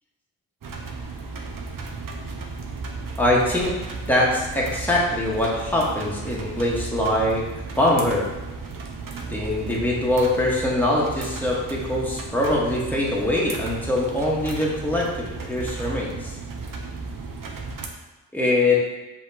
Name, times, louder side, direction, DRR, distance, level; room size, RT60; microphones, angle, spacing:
sound 1, 0.6-17.9, right 3 dB, 45° right, 0.8 m, -34 dB
voice 1, 3.2-3.8 4.1-7.4 7.8-8.2 9.3-16.4 18.3-18.8, left 1 dB, 5° left, -4 dB, 1.3 m, -23 dB
5.8 x 2.9 x 2.8 m, 1.1 s
supercardioid pair, 45°, 46 cm